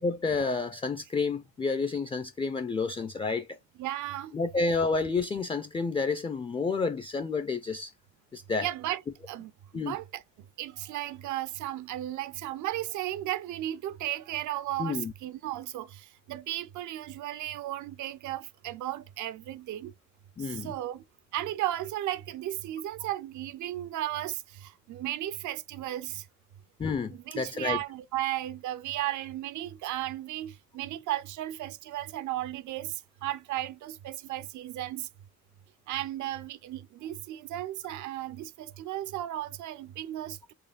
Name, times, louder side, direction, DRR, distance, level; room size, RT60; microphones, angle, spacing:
voice 1, 0.0-3.6 4.3-7.9 8.3-8.7 9.7-10.0 14.8-15.1 20.4-20.7 26.8-27.8, left 4 dB, 20° left, 0.4 m, -30 dB
voice 2, 3.8-4.4 8.6-9.0 9.3-10.2 10.6-19.9 20.4-21.0 21.3-26.3 27.1-35.1 35.9-40.5, right 14 dB, 75° right, 0.5 m, -35 dB
4.3 x 3.1 x 2.3 m
cardioid pair, 90°, 30 cm